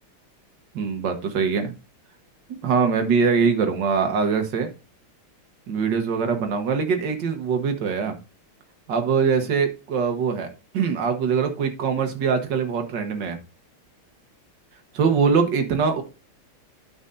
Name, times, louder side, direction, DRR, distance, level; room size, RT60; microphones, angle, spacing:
voice 1, 0.7-1.7 2.5-4.7 5.7-8.1 8.9-10.5 10.7-13.4 14.9-16.0, right 5 dB, 60° right, 6 dB, 1.7 m, -23 dB
12.0 x 5.6 x 2.6 m, 0.31 s
omnidirectional pair, 2.3 m